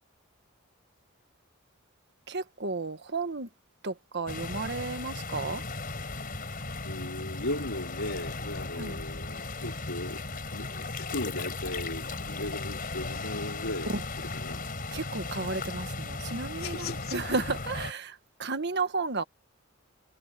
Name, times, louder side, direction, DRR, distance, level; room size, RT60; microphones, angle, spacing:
voice 1, 2.3-3.5 3.8-5.6 8.7-9.0 13.9-14.0 14.9-19.2, right 3 dB, 55° right, 1.5 m, -33 dB
sound 1, 4.3-17.9, left 3 dB, 45° left, 4.4 m, -36 dB
voice 2, 6.8-10.2 10.5-14.7 16.6-17.2, left 2 dB, 90° left, 4.2 m, -37 dB
head